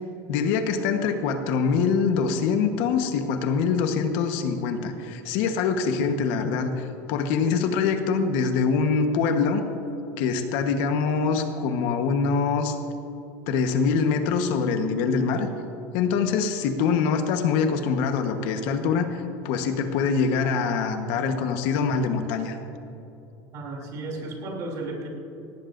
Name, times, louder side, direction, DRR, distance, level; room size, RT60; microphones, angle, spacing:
voice 1, 0.3-9.6 10.2-12.8 13.5-15.5 15.9-22.6, left 5 dB, 65° left, 6 dB, 1.2 m, -24 dB
voice 2, 23.5-25.1, right 2 dB, 45° right, 1 dB, 3.0 m, -34 dB
18.0 x 17.5 x 2.6 m, 2.9 s
cardioid pair, 150°, 8 cm